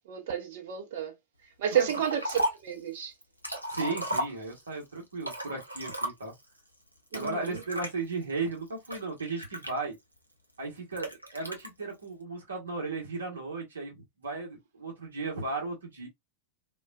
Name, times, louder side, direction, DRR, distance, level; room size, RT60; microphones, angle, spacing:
voice 1, 0.1-1.1 1.6-3.1 7.1-7.6, right 9 dB, 55° right, 0.8 m, -31 dB
Liquid, 1.7-2.7 3.2-4.7 5.2-6.4 7.1-7.9 8.5-10.2 11.0-11.7, equal, 90° right, 0.6 m, -34 dB
voice 2, 3.7-6.3 7.1-9.9 10.6-16.1, right 3 dB, 70° right, 1.1 m, -35 dB
2.4 x 2.3 x 2.3 m
figure-of-eight pair, 90°, 0 cm